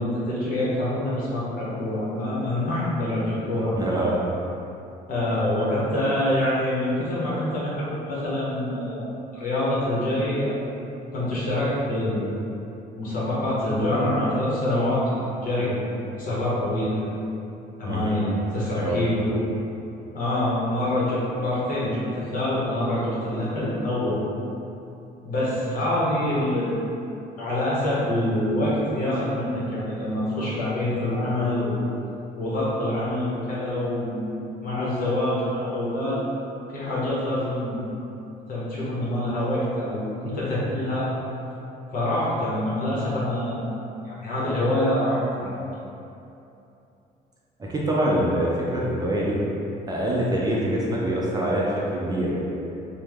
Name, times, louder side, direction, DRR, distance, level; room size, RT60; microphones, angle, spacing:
voice 1, 0.0-3.8 5.1-10.7 11.1-12.3 13.0-17.1 17.8-19.4 20.1-24.2 25.2-26.8 27.4-31.8 32.4-34.3 34.6-36.2 36.7-37.9 38.5-41.1 41.9-43.6 44.0-45.7, left 1 dB, 55° left, -8 dB, 1.0 m, -25 dB
voice 2, 3.8-4.1 17.8-18.2 18.8-19.0 47.6-49.4 49.9-52.4, right 1 dB, 25° right, -5 dB, 0.5 m, -25 dB
3.0 x 2.1 x 3.4 m, 2.8 s
cardioid pair, 110°, 17 cm